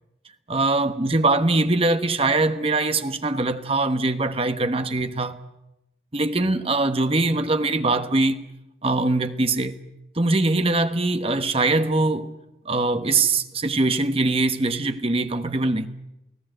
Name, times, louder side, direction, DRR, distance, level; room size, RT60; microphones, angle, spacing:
voice 1, 0.5-5.4 6.1-8.4 8.8-9.8 10.1-12.3 12.6-15.9, right 2 dB, 30° right, 1.2 m, -22 dB
29.0 x 17.5 x 7.9 m
head